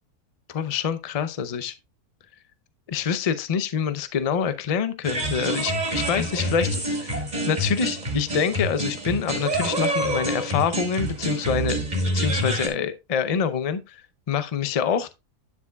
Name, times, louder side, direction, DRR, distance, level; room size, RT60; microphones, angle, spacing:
voice 1, 0.5-1.8 2.9-15.1, left 7 dB, 65° left, 0.3 m, -26 dB
sound 1, 5.0-12.7, right 1 dB, 25° right, 2.1 m, -27 dB
9.6 x 7.1 x 2.3 m
omnidirectional pair, 1.6 m